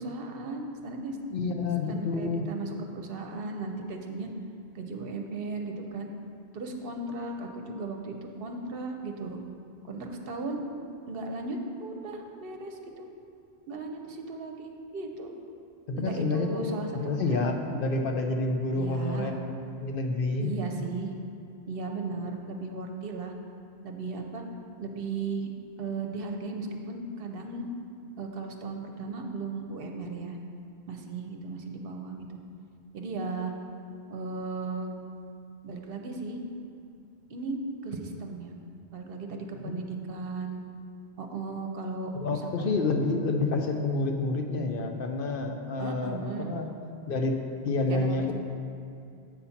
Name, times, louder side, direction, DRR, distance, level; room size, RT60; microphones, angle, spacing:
voice 1, 0.0-1.2 1.9-4.3 4.7-6.1 6.5-9.4 9.8-10.6 11.1-13.1 13.7-15.3 15.9-16.9 17.3-17.4 18.7-19.4 20.4-21.1 21.7-23.3 23.8-24.4 24.8-25.5 25.8-27.7 28.2-30.4 30.9-32.3 32.9-33.5 34.1-34.9 35.6-36.4 37.3-38.5 38.9-40.6 41.2-42.8 45.8-46.6 47.9-48.3, right 3 dB, 65° right, 3 dB, 0.8 m, -36 dB
voice 2, 1.3-2.5 15.9-16.7 16.9-20.5 39.6-39.8 42.1-46.7 47.1-47.4 47.6-48.3, left 3 dB, 60° left, 3 dB, 0.7 m, -29 dB
8.2 x 4.1 x 5.7 m, 2.4 s
omnidirectional pair, 1.1 m